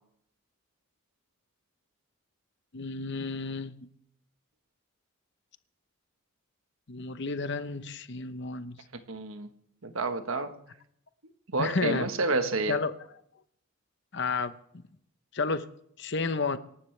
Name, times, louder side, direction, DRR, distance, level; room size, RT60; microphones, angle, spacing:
voice 1, 2.7-3.7 6.9-8.8 11.6-12.1 12.7-12.9 14.1-14.6 15.3-15.7 16.0-16.6, left 4 dB, 50° left, 0.9 m, -31 dB
voice 2, 9.1-9.5 9.8-10.6 11.5-12.8, right 3 dB, 70° right, 1.3 m, -29 dB
25.5 x 12.0 x 3.3 m
head